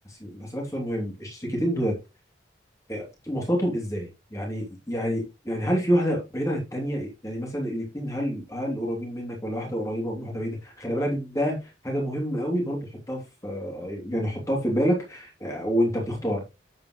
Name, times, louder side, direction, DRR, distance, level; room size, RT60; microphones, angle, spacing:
voice 1, 0.0-2.0 2.9-16.4, equal, 15° left, 2.9 m, -28 dB
8.9 x 7.6 x 3.1 m
head